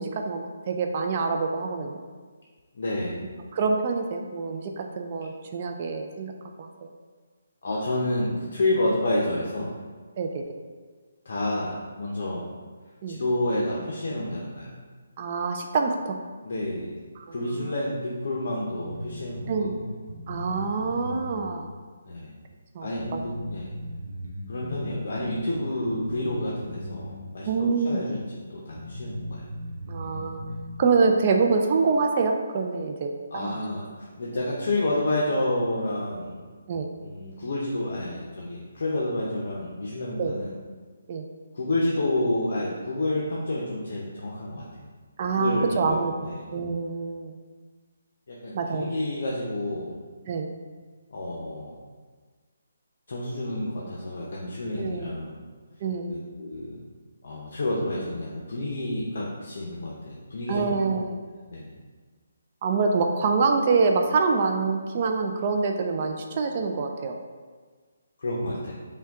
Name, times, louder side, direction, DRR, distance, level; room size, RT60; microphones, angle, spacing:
voice 1, 0.0-2.0 3.5-6.3 6.6-6.9 10.2-10.4 13.0-13.2 15.2-16.2 17.3-17.4 19.5-19.7 20.3-21.7 22.8-23.2 27.4-28.0 29.9-30.4 30.8-33.5 36.7-36.9 40.2-40.3 41.1-41.2 45.2-46.1 46.5-47.4 48.5-48.9 50.3-50.5 54.8-55.1 55.8-56.2 60.5-61.2 62.6-67.1, right 4 dB, 35° right, 4 dB, 0.3 m, -26 dB
voice 2, 2.7-3.3 7.6-9.7 11.2-12.5 13.1-14.7 16.4-16.9 17.3-19.9 22.0-22.3 22.8-23.7 24.5-29.4 33.3-36.3 37.0-40.5 41.5-44.6 45.3-46.4 48.3-49.9 51.1-51.8 53.1-55.3 56.1-56.8 57.2-60.6 61.5-61.7 68.2-68.7, left 1 dB, 60° left, -4 dB, 0.7 m, -29 dB
sound 1, 18.8-21.4 21.7-21.8 22.4-22.5 23.0-27.2 27.5-27.6 28.2-28.3 28.7-30.8, equal, 80° right, 1.0 m, -37 dB
5.6 x 2.2 x 3.5 m, 1.5 s
hypercardioid pair, 160°, 0 cm